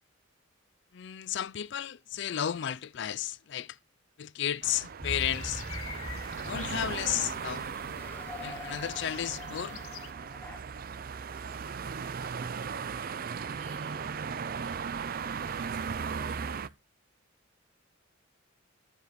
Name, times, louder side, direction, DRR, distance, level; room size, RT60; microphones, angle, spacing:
voice 1, 0.9-3.8 4.2-5.6 6.5-7.7 8.4-9.8, left 10 dB, 55° left, 0.4 m, -33 dB
sound 1, 4.6-16.7, right 6 dB, 45° right, 0.4 m, -37 dB
sound 2, 5.0-10.1, left 9 dB, 90° left, 0.9 m, -46 dB
sound 3, 5.0-10.6, left 1 dB, 10° left, 0.7 m, -43 dB
voice 2, 11.2-12.4 13.4-14.1 14.6-16.7, right 3 dB, 65° right, 2.0 m, -56 dB
14.0 x 5.0 x 3.1 m
head